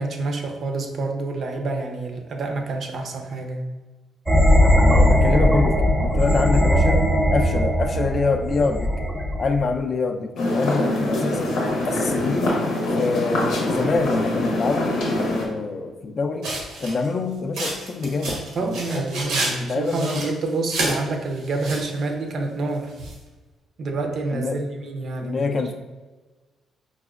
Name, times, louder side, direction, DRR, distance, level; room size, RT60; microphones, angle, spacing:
voice 1, 0.0-3.6 18.5-22.9 23.8-25.6, right 3 dB, 60° right, 4 dB, 0.5 m, -28 dB
sound 1, 4.3-9.7, equal, 5° right, 0.5 m, -19 dB
voice 2, 4.8-7.0 7.3-9.1 9.4-11.5 11.8-12.6 12.9-16.5 16.8-19.3 19.6-20.2 24.3-24.6 25.2-25.7, left 4 dB, 45° left, 5 dB, 0.4 m, -26 dB
sound 2, 10.4-15.5, left 1 dB, 90° left, 0.7 m, -24 dB
sound 3, 16.4-17.1 17.6-19.5 19.9-21.0 21.4-21.9 23.0-23.1, right 2 dB, 90° right, 0.8 m, -28 dB
4.6 x 2.1 x 2.4 m, 1.2 s
cardioid pair, 90°, 0 cm